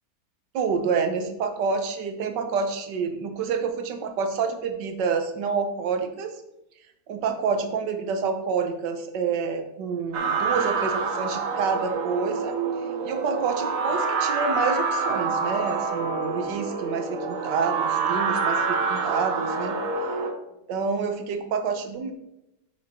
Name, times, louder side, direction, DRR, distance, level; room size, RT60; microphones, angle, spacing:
voice 1, 0.5-6.3 7.1-12.5 13.0-19.7 20.7-22.1, right 5 dB, 90° right, 7 dB, 1.5 m, -28 dB
sound 1, 10.1-20.3, right 4 dB, 55° right, 1.2 m, -27 dB
6.6 x 6.5 x 4.2 m, 0.88 s
omnidirectional pair, 1.8 m